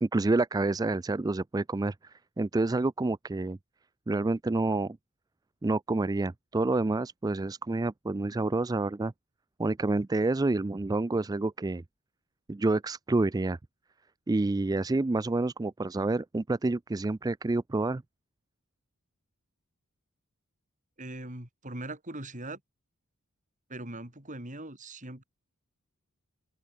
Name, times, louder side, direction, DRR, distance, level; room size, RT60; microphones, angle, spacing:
voice 1, 0.0-3.6 4.1-5.0 5.6-9.1 9.6-11.8 12.5-13.6 14.3-18.0, right 2 dB, 15° right, 0.3 m, -28 dB
voice 2, 21.0-22.6 23.7-25.2, right 1 dB, 35° right, 4.8 m, -40 dB
open air
head